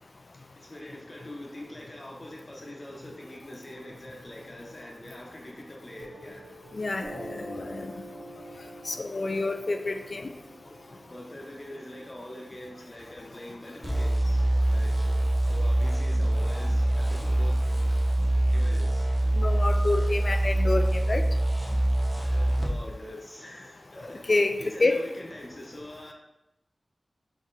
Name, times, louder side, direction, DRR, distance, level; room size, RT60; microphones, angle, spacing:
voice 1, 0.6-6.5 11.1-15.2 15.5-17.6 18.5-19.3 22.2-24.3 24.6-26.1, left 1 dB, 40° left, -1 dB, 0.9 m, -43 dB
Piano, 6.0-13.1, right 1 dB, 65° right, 0.6 m, -46 dB
voice 2, 6.7-7.9 8.9-10.3 19.4-21.3 24.3-24.5 24.8-25.0, left 2 dB, 60° left, 6 dB, 0.4 m, -28 dB
sound 1, 13.8-22.7, right 1 dB, 40° right, 1.0 m, -24 dB
4.1 x 2.9 x 3.9 m, 0.87 s
wide cardioid pair, 60°, 0 cm